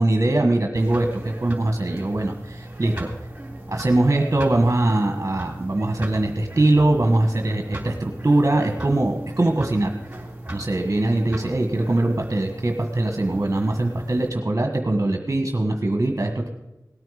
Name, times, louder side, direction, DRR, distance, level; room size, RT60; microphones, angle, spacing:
voice 1, 0.0-3.1 3.7-9.9 10.5-16.5, right 2 dB, 40° right, 4 dB, 1.5 m, -22 dB
sound 1, 0.7-14.3, right 1 dB, 20° right, 3.4 m, -37 dB
17.5 x 9.1 x 5.0 m, 0.97 s
wide cardioid pair, 50°, 7 cm